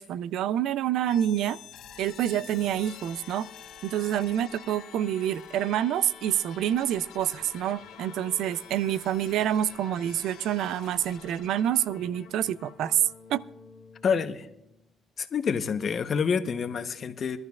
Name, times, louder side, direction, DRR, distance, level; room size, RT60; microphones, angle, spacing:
voice 1, 0.0-1.6 2.0-3.5 3.8-13.0 13.3-13.4, right 11 dB, 85° right, 0.3 m, -27 dB
sound 1, 1.0-14.9, left 8 dB, 85° left, 1.4 m, -48 dB
voice 2, 14.0-14.5 15.2-17.4, left 6 dB, 50° left, 0.9 m, -27 dB
23.0 x 12.0 x 2.4 m
cardioid pair, 90°, 0 cm